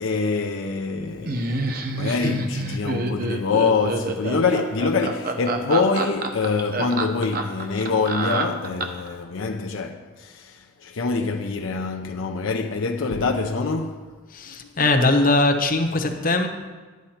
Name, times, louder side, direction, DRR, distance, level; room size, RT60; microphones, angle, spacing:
voice 1, 0.0-14.1 14.5-14.7, left 4 dB, 75° left, 0.6 m, -25 dB
Laughter, 1.3-9.1, right 2 dB, 45° right, 0.8 m, -27 dB
voice 2, 14.3-16.5, left 2 dB, 45° left, 1.0 m, -20 dB
11.5 x 9.4 x 4.3 m
head